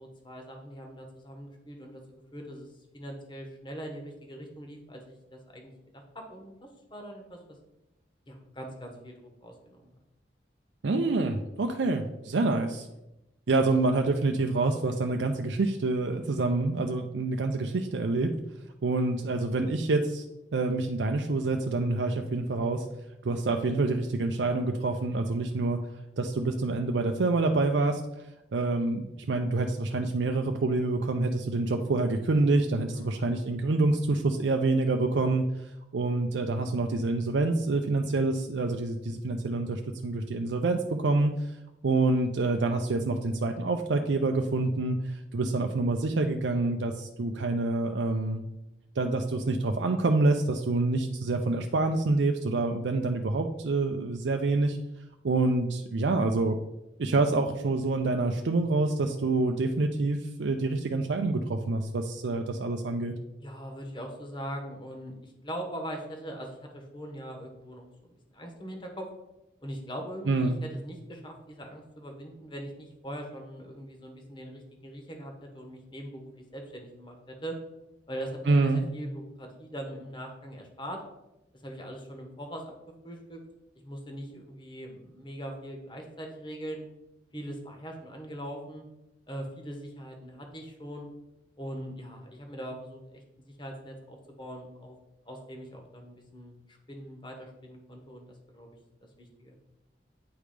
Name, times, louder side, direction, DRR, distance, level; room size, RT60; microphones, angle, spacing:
voice 1, 0.0-2.0 2.3-2.7 2.9-6.6 6.9-7.4 8.3-9.9 32.9-33.5 63.4-69.1 69.6-77.6 78.1-81.0 81.6-82.7 83.0-83.4 83.8-86.8 87.3-88.8 89.3-91.0 91.6-95.0 95.2-98.7 99.2-99.6, equal, 25° left, 2 dB, 1.3 m, -41 dB
voice 2, 10.8-12.9 13.5-18.3 18.8-20.2 20.5-22.9 23.2-25.8 26.2-41.6 41.8-48.4 49.0-54.8 55.2-56.6 57.0-63.1 70.3-70.6 78.5-78.8, right 3 dB, 80° right, 4 dB, 0.5 m, -27 dB
8.9 x 3.3 x 5.0 m, 0.92 s
head